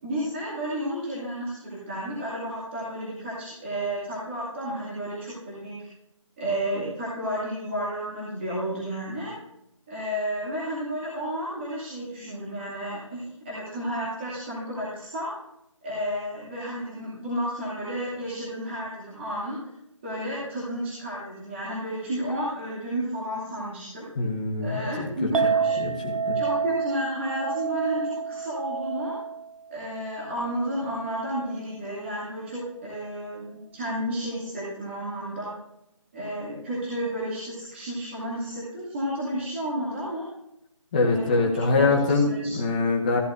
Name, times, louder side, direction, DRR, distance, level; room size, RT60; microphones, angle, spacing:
voice 1, 0.0-5.8 6.4-9.3 9.9-15.3 15.8-19.6 20.0-24.1 24.6-25.8 26.3-29.2 29.7-35.5 36.1-40.3 41.0-42.5, equal, 20° right, -9 dB, 2.5 m, -32 dB
voice 2, 24.2-25.3 25.8-26.4 40.9-43.2, left 3 dB, 15° left, -1 dB, 1.0 m, -24 dB
Chink clink, 25.3-31.6, right 6 dB, 80° right, 0.5 m, -30 dB
15.0 x 10.5 x 2.6 m, 0.82 s
figure-of-eight pair, 165°, 17 cm